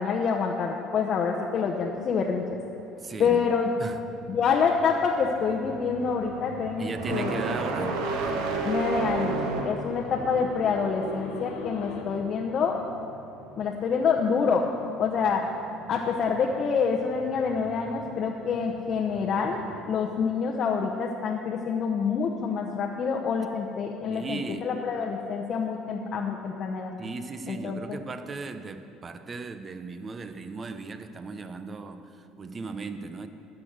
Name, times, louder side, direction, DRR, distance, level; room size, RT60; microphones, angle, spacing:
voice 1, 0.0-2.4 3.2-3.7 4.3-7.4 8.6-12.8 13.6-14.7 15.0-15.5 15.9-19.6 19.9-27.0 27.5-28.0, left 5 dB, 50° left, 0 dB, 0.8 m, -27 dB
sound 1, 1.8-19.8, right 3 dB, 90° right, 1.1 m, -36 dB
voice 2, 3.0-3.4 3.8-4.0 6.8-8.0 24.1-24.7 27.0-33.3, right 4 dB, 30° right, 10 dB, 0.7 m, -37 dB
sound 2, 5.7-12.0, left 4 dB, 90° left, 1.5 m, -44 dB
12.5 x 6.0 x 8.0 m, 2.7 s
cardioid pair, 105°, 0 cm